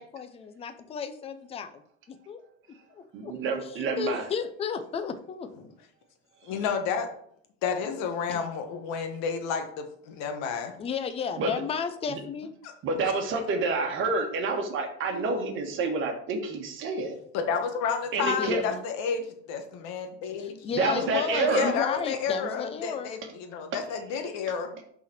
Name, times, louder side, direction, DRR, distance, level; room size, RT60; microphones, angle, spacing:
voice 1, 0.0-1.7 2.3-2.4 2.9-3.3 3.6-5.5 8.3-8.4 10.8-12.5 18.2-18.8 20.4-23.1, left 6 dB, 20° left, 10 dB, 0.5 m, -33 dB
voice 2, 3.1-4.3 11.4-11.6 12.1-12.2 12.8-17.2 18.1-18.6 20.7-21.7 23.7-23.8, right 3 dB, 35° right, 4 dB, 1.4 m, -28 dB
voice 3, 6.4-7.1 7.6-10.7 12.6-12.7 17.3-20.6 21.4-24.8, left 6 dB, 55° left, 5 dB, 1.3 m, -31 dB
5.6 x 4.2 x 6.0 m, 0.65 s
supercardioid pair, 145°, 33 cm